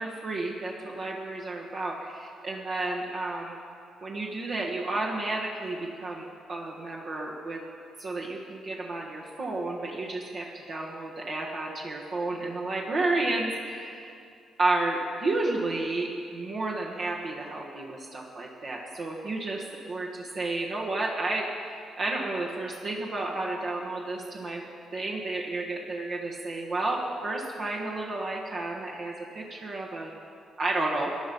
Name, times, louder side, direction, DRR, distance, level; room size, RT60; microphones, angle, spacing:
voice 1, 0.0-3.6 4.0-7.6 8.0-14.1 14.6-19.6 19.9-24.6 24.9-30.1 30.6-31.1, right 2 dB, 55° right, -3 dB, 1.4 m, -31 dB
15.0 x 10.0 x 5.3 m, 2.4 s
cardioid pair, 90°, 0 cm